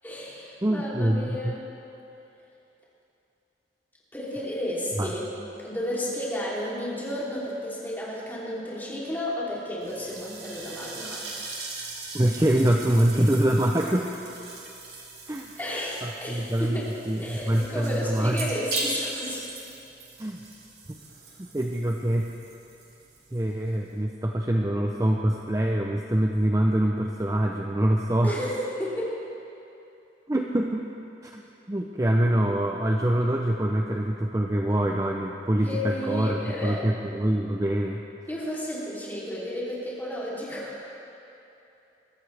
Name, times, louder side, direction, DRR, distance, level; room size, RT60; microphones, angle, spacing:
voice 1, 0.0-1.6 4.1-5.3 5.6-11.5 15.6-16.9 17.2-19.4 28.2-29.2 35.6-36.9 38.3-40.9, left 1 dB, 10° left, -7 dB, 3.1 m, -32 dB
voice 2, 0.6-1.5 5.0-5.1 12.1-14.1 15.3-15.5 16.0-16.8 17.1-18.5 20.2-20.4 21.4-22.3 23.3-28.3 30.3-30.9 31.2-31.4 31.7-38.0, right 1 dB, 20° right, 0 dB, 0.6 m, -25 dB
sound 1, 9.8-24.0, right 2 dB, 55° right, 2.7 m, -39 dB
22.5 x 13.5 x 3.4 m, 2.9 s
head